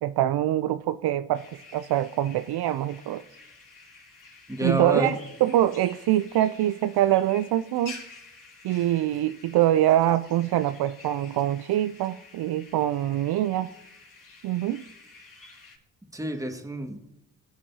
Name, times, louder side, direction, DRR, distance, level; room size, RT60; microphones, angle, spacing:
voice 1, 0.0-3.2 4.6-8.0 8.6-13.7 14.4-14.8, right 13 dB, 65° right, 0.5 m, -24 dB
sound 1, 1.3-15.8, left 3 dB, 50° left, 3.2 m, -49 dB
voice 2, 4.5-5.2 16.1-17.0, right 1 dB, 10° right, 1.9 m, -28 dB
17.0 x 8.6 x 2.8 m
hypercardioid pair, 45°, 42 cm